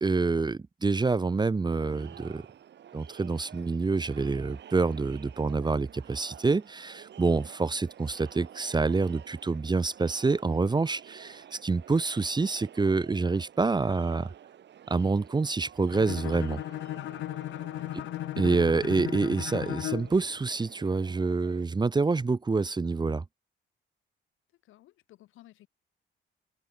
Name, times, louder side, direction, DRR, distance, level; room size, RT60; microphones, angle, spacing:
voice 1, 0.0-2.4 2.9-14.3 14.9-16.6 18.4-23.2, right 4 dB, 20° right, 0.9 m, -27 dB
Crowd, 1.7-21.6, right 10 dB, 65° right, 3.2 m, -50 dB
Bowed string instrument, 15.9-20.2, left 15 dB, 75° left, 0.6 m, -36 dB
voice 2, 17.8-18.1 24.5-25.7, left 15 dB, 90° left, 7.3 m, -56 dB
cardioid pair, 90°, 20 cm